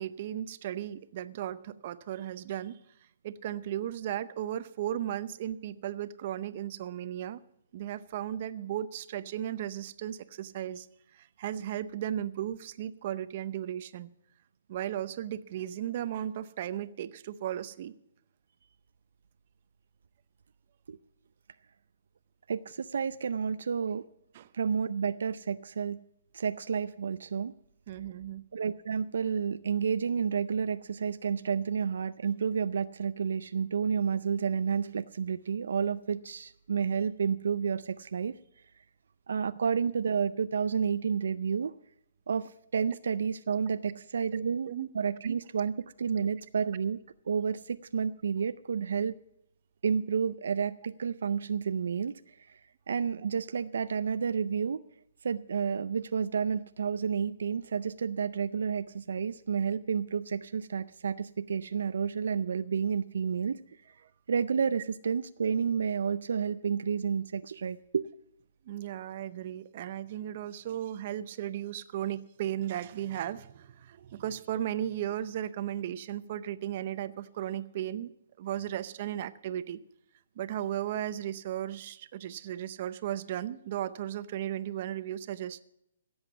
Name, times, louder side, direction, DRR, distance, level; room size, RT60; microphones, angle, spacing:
voice 1, 0.0-2.8 3.2-7.4 7.7-10.9 11.1-14.1 14.7-17.9 24.3-24.5 27.9-28.4 44.3-44.9 68.6-79.8 80.4-85.6, right 11 dB, 40° right, 13 dB, 0.7 m, -35 dB
voice 2, 22.5-24.0 24.5-26.0 26.3-27.5 28.5-38.3 39.3-41.7 42.3-47.0 47.3-49.2 49.8-52.1 52.5-52.6 52.9-54.8 55.2-63.6 64.3-68.1, right 6 dB, 75° right, 13 dB, 0.5 m, -30 dB
16.0 x 8.0 x 7.0 m, 0.76 s
hypercardioid pair, 160°, 0 cm